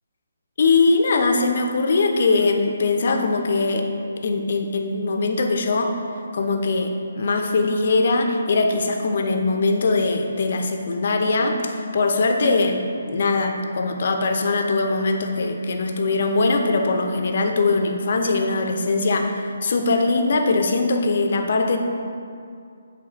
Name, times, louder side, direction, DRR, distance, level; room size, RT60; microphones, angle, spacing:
voice 1, 0.6-3.9 4.2-6.0 6.3-21.8, left 3 dB, 55° left, 4 dB, 0.6 m, -21 dB
7.7 x 3.4 x 4.5 m, 2.4 s
figure-of-eight pair, 145°, 0 cm